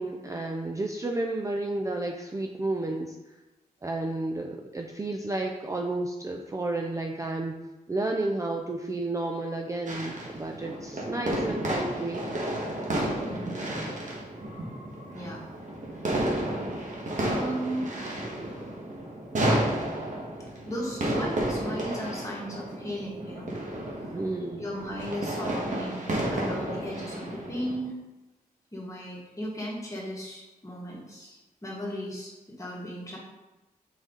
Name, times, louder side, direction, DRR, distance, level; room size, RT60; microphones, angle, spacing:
voice 1, 0.0-3.1 3.8-7.5 7.9-12.3 24.1-24.7, right 2 dB, 20° right, 2 dB, 0.4 m, -31 dB
sound 1, 9.9-27.8, right 1 dB, 55° right, 1.6 m, -32 dB
voice 2, 13.2-13.8 15.1-15.4 17.2-18.3 20.7-23.5 23.8-24.2 24.6-27.9 28.7-33.2, equal, 20° left, -4 dB, 1.9 m, -36 dB
6.3 x 4.9 x 3.9 m, 1.1 s
wide cardioid pair, 150°, 15 cm